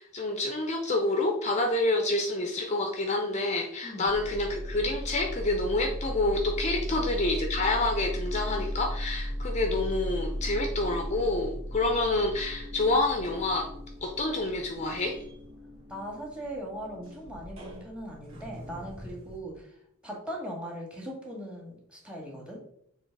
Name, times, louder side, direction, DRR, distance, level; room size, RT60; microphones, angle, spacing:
voice 1, 0.0-13.7 14.0-15.2, left 2 dB, 35° left, 3 dB, 0.7 m, -28 dB
sound 1, 4.1-19.4, equal, 70° right, 1.9 m, -37 dB
voice 2, 6.7-7.1 15.9-19.8 20.0-22.7, equal, 5° right, -2 dB, 2.0 m, -40 dB
6.9 x 3.3 x 4.7 m, 0.69 s
head